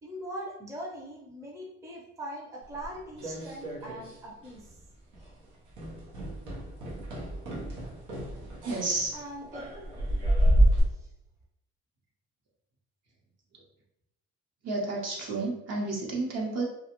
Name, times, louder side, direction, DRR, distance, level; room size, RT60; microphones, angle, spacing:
voice 1, 0.0-4.7 9.1-9.9 10.9-11.1, right 1 dB, 10° right, -3 dB, 0.5 m, -41 dB
sound 1, 2.7-4.2 4.4-4.8 5.1-5.3 5.7-10.8, right 1 dB, 90° right, 0.8 m, -29 dB
voice 2, 8.6-9.1 14.6-16.6, right 3 dB, 60° right, -2 dB, 0.9 m, -31 dB
2.4 x 2.3 x 2.9 m, 0.83 s
cardioid pair, 90°, 30 cm